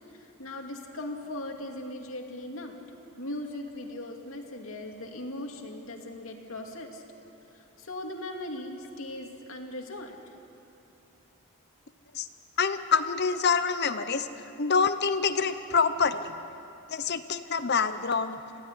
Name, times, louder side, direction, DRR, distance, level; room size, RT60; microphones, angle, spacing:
voice 1, 0.1-2.8 3.2-7.0 7.5-10.2, left 1 dB, 70° left, 2 dB, 2.5 m, -39 dB
voice 2, 12.6-14.3 14.6-16.2 16.9-18.4, left 5 dB, 50° left, 11 dB, 0.8 m, -26 dB
26.5 x 16.5 x 10.0 m, 2.8 s
head